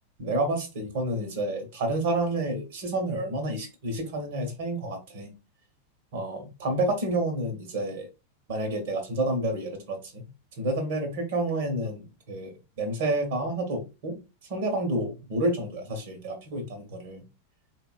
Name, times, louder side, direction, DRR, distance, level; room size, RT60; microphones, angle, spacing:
voice 1, 0.2-5.3 6.1-8.1 8.5-10.3 10.6-14.1 14.5-17.2, right 1 dB, 55° right, 0.8 m, -29 dB
3.6 x 2.1 x 2.3 m
figure-of-eight pair, 90°, 0 cm